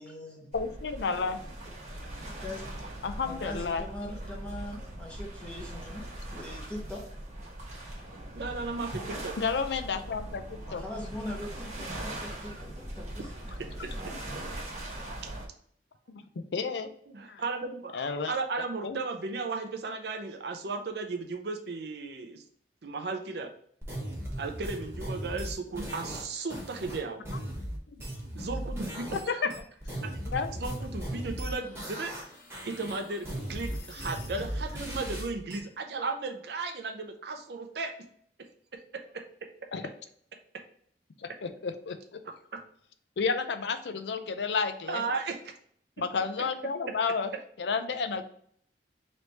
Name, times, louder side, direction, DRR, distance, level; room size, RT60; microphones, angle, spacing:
voice 1, 0.0-0.5 2.2-2.7 3.2-6.0 6.3-7.0 10.6-13.3, left 1 dB, 5° left, -3 dB, 0.8 m, -41 dB
voice 2, 0.5-1.4 3.0-3.9 9.4-10.8 16.1-16.2 16.5-16.9 17.3-17.4 17.9-18.3 18.8-19.0 29.3-29.5 30.3-30.5 39.7-39.9 41.2-42.2 43.2-45.0 46.0-47.3 47.6-48.2, left 5 dB, 75° left, 9 dB, 0.5 m, -31 dB
sound 1, 0.5-15.5, right 1 dB, 40° right, 1.1 m, -40 dB
voice 3, 8.3-9.3 13.8-13.9 15.2-15.3 17.1-22.4 22.8-23.5 24.4-27.2 28.4-29.0 29.3-29.4 29.9-30.1 30.5-32.1 32.7-37.9 38.7-39.3 40.5-40.6 42.5-42.6 44.9-45.4, right 3 dB, 65° right, 4 dB, 0.6 m, -35 dB
sound 2, 23.8-29.2 29.5-32.2 32.5-35.6, equal, 15° right, 1.1 m, -37 dB
sound 3, 31.4-35.5, left 1 dB, 50° left, 0.9 m, -46 dB
3.3 x 3.2 x 4.0 m, 0.63 s
head